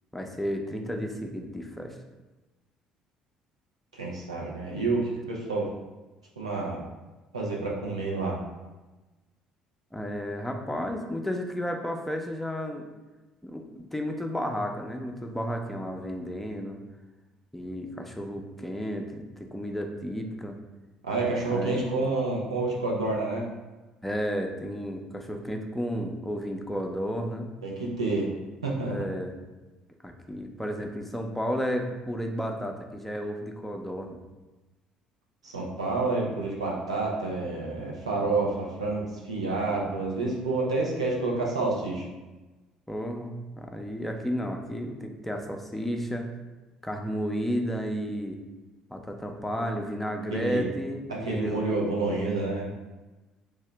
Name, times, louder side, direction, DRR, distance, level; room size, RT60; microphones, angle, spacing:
voice 1, 0.1-2.0 9.9-12.9 13.4-16.8 17.5-20.6 21.5-21.8 24.0-27.5 28.8-29.3 30.0-34.2 42.9-46.3 46.8-48.4 48.9-51.7, equal, 5° left, 2 dB, 0.5 m, -32 dB
voice 2, 3.9-5.7 6.4-6.8 7.3-8.4 21.0-23.5 27.6-28.3 28.6-29.0 35.4-42.0 50.3-50.6 51.1-52.7, right 3 dB, 85° right, -3 dB, 0.6 m, -29 dB
3.4 x 2.7 x 3.3 m, 1.1 s
figure-of-eight pair, 50°, 3 cm